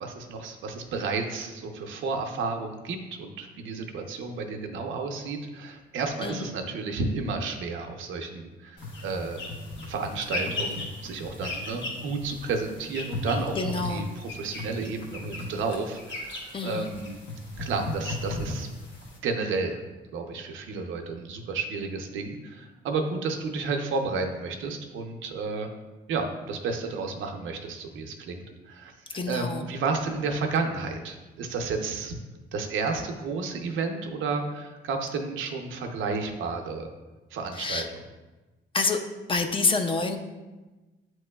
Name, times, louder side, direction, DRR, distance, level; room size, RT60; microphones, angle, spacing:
voice 1, 0.0-9.4 9.9-17.2 17.6-18.7 19.2-19.8 20.1-25.7 26.1-32.1 32.5-36.9 37.3-37.8, right 4 dB, 75° right, 4 dB, 0.6 m, -32 dB
sound 1, 8.8-19.2, left 2 dB, 70° left, 1.1 m, -36 dB
voice 2, 13.6-14.1 16.5-16.9 29.1-29.6 37.6-37.9 38.7-39.0 39.3-40.2, left 4 dB, 25° left, 6 dB, 0.4 m, -27 dB
7.7 x 3.0 x 2.2 m, 1.2 s
cardioid pair, 90°, 20 cm